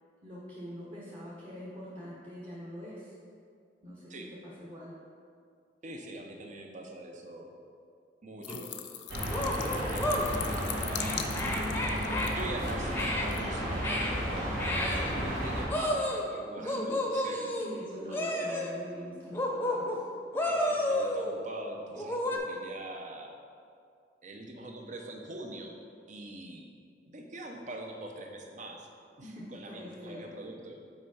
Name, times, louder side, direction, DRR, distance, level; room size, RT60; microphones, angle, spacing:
voice 1, 0.2-3.1 3.8-4.1 4.4-4.9 16.6-20.0 29.2-30.3, equal, 30° right, -7 dB, 1.1 m, -44 dB
voice 2, 5.8-7.5 8.2-8.7 9.3-11.2 11.5-11.6 12.3-14.6 15.0-17.5 18.1-18.2 20.4-23.3 24.2-25.8 26.1-26.6 27.1-28.9 29.2-30.8, right 1 dB, 45° right, 2 dB, 0.8 m, -43 dB
sound 1, 8.4-12.8 13.2-13.4, left 10 dB, 75° left, 0.5 m, -40 dB
sound 2, 8.5-8.6 9.3-10.3 10.9-12.3 12.9-13.3 13.8-14.2 14.6-15.1 15.7-16.3 16.7-17.7 18.1-18.7 19.3-20.0 20.3-21.4 21.9-22.4, left 1 dB, 15° left, 0.7 m, -31 dB
sound 3, 9.1-15.7, equal, 65° right, 1.7 m, -33 dB
6.0 x 4.5 x 5.5 m, 2.3 s
head